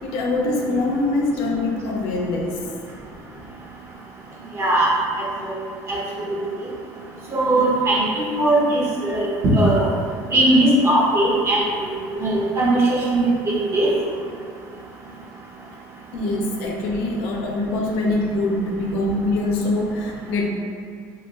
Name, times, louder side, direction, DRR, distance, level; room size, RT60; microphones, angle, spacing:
voice 1, 0.0-2.6 16.1-20.5, left 2 dB, 85° left, -1 dB, 0.6 m, -23 dB
voice 2, 4.6-4.9 5.4-5.5 5.9-6.4 7.3-9.3 9.5-9.9 10.3-11.9 12.2-13.9, right 1 dB, 35° right, -5 dB, 0.8 m, -19 dB
3.2 x 2.4 x 3.2 m, 2.2 s
cardioid pair, 140°, 8 cm